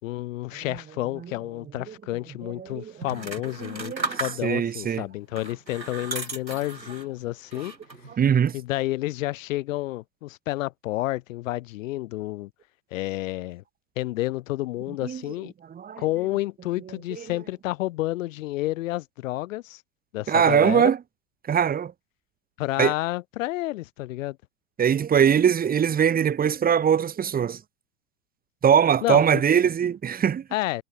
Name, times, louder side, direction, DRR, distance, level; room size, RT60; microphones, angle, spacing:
voice 1, 0.0-7.7 8.5-12.5 12.9-13.6 14.0-15.5 16.0-19.8 20.1-20.9 22.6-24.4 29.0-29.4 30.5-30.8, left 17 dB, 50° left, 4.3 m, -30 dB
voice 2, 2.4-2.9 3.6-5.1 8.1-8.6 15.0-15.2 15.7-16.0 17.2-17.3 20.3-21.0 21.5-21.9 22.8-22.9 24.8-27.6 28.6-30.4, right 8 dB, 15° right, 2.9 m, -22 dB
sound 1, 3.0-4.7 5.3-7.1 7.5-8.1, right 3 dB, 90° right, 2.4 m, -35 dB
figure-of-eight pair, 95°, 50 cm